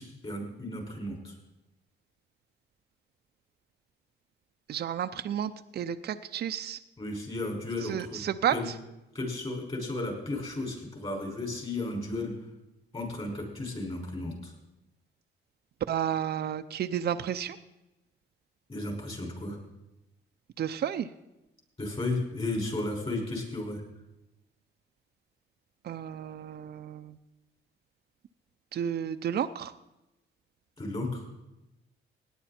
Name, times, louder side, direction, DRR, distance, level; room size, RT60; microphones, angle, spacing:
voice 1, 0.0-1.4 7.0-8.2 8.5-8.7 9.1-12.3 12.9-14.5 18.7-19.6 21.8-23.8 30.8-31.3, left 2 dB, 30° left, 0 dB, 5.7 m, -34 dB
voice 2, 4.7-5.5 5.8-6.8 7.9-8.5 15.9-17.6 20.6-21.1 25.9-27.0 28.7-29.7, right 9 dB, 55° right, 8 dB, 0.6 m, -31 dB
17.5 x 10.5 x 4.4 m, 0.95 s
cardioid pair, 90°, 20 cm